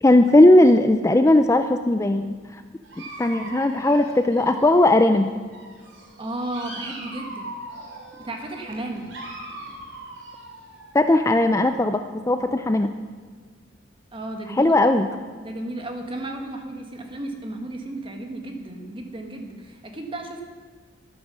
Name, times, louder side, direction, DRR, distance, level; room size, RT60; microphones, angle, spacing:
voice 1, 0.0-2.6 3.2-5.3 10.9-12.9 14.5-15.1, left 1 dB, 15° left, 8 dB, 0.4 m, -17 dB
Dog, 2.8-5.2 5.5-11.5, right 2 dB, 75° right, 3.4 m, -40 dB
voice 2, 6.2-7.5 8.2-9.1 14.1-14.9 15.4-20.4, right 1 dB, 25° right, 4 dB, 1.6 m, -34 dB
13.0 x 11.5 x 6.2 m, 1.5 s
head